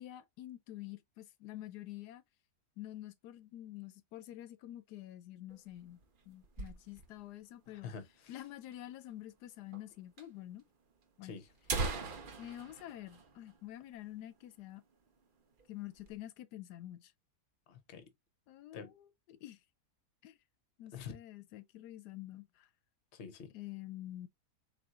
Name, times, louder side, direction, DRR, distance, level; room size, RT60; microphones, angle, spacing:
voice 1, 0.0-2.2 2.8-6.0 6.3-7.9 8.3-10.6 11.2-11.4 12.4-14.8 15.7-17.1 18.5-19.6 20.2-20.4 20.8-22.7 23.5-24.3, left 14 dB, 85° left, 1.1 m, -48 dB
sound 1, 5.5-7.3 7.6-7.7 7.9-8.0 8.7-8.8 9.7-9.9 10.2-10.3 11.0-11.1 11.5-14.1 14.4-14.5 14.9-15.2 15.6-16.2, right 4 dB, 45° right, 0.7 m, -40 dB
voice 2, 7.7-8.4 11.2-11.5 17.7-18.1 18.7-18.9 20.9-21.2 23.1-23.5, left 6 dB, 50° left, 1.0 m, -47 dB
4.3 x 3.7 x 2.4 m
omnidirectional pair, 1.7 m